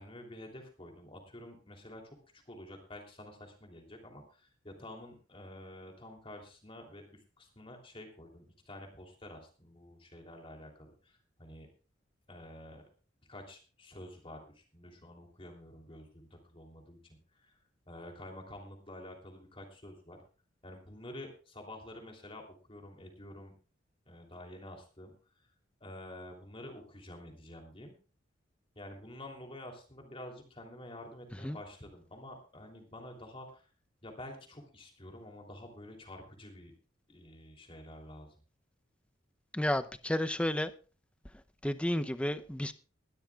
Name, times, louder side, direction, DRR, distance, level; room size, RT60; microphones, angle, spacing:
voice 1, 0.0-11.7 12.3-12.8 13.3-17.6 17.9-20.2 20.6-23.5 24.1-25.5 25.8-27.9 28.7-33.7 34.0-36.7 37.1-38.3, left 1 dB, 30° left, 3.1 m, -49 dB
voice 2, 39.5-40.7 41.6-42.7, left 1 dB, 5° left, 0.6 m, -31 dB
21.0 x 12.5 x 2.4 m
head